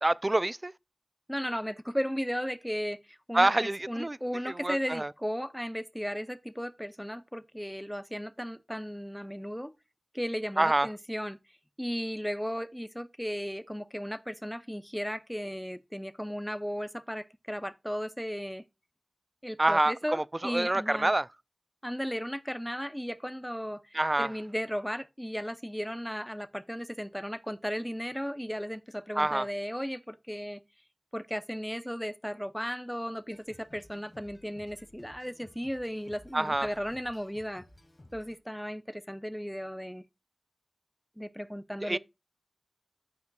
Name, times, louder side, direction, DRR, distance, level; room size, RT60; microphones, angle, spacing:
voice 1, 0.0-0.7 3.3-4.2 4.5-5.1 10.6-10.9 19.6-21.3 23.9-24.3 29.2-29.5 36.3-36.7 41.8-42.0, right 2 dB, 35° right, 0.4 m, -27 dB
voice 2, 1.3-9.7 10.1-11.4 11.8-18.6 19.4-21.1 21.8-30.6 31.1-37.6 38.1-40.0 41.2-42.0, equal, ahead, 0.7 m, -35 dB
sound 1, 33.3-38.4, left 1 dB, 45° left, 2.2 m, -56 dB
14.5 x 5.2 x 2.3 m
wide cardioid pair, 60°, 0 cm